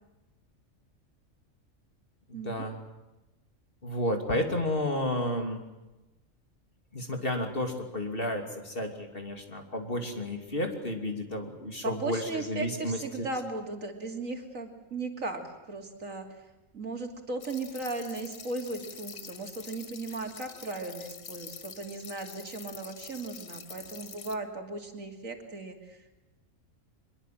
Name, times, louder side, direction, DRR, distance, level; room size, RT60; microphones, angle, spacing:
voice 1, 2.3-2.8 3.8-5.6 6.9-13.3, left 1 dB, 45° left, 4 dB, 3.1 m, -32 dB
voice 2, 11.8-16.3 16.7-26.2, right 3 dB, 80° right, 4 dB, 3.2 m, -37 dB
sound 1, 17.4-24.3, left 6 dB, 60° left, 1.5 m, -46 dB
23.5 x 22.5 x 7.7 m, 1.0 s
omnidirectional pair, 1.4 m